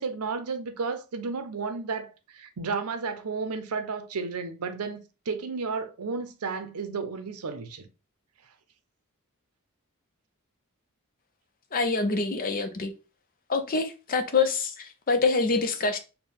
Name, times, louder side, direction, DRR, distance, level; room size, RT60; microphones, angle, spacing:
voice 1, 0.0-7.9, right 4 dB, 85° right, 0.6 m, -33 dB
voice 2, 11.7-12.9 13.5-16.0, left 4 dB, 40° left, 0.6 m, -26 dB
4.4 x 2.2 x 3.4 m
head